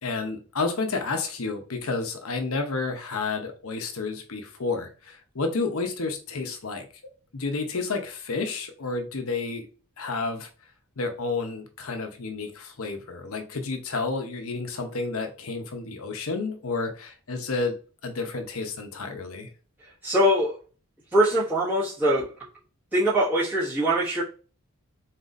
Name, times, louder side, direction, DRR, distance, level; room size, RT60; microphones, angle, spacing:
voice 1, 0.0-6.9 7.3-9.7 10.0-10.5 11.0-17.8 18.0-19.5, left 3 dB, 70° left, 0.8 m, -30 dB
voice 2, 20.0-20.5 21.1-22.3 22.9-24.2, equal, 5° right, 1.7 m, -22 dB
4.1 x 4.0 x 2.6 m
head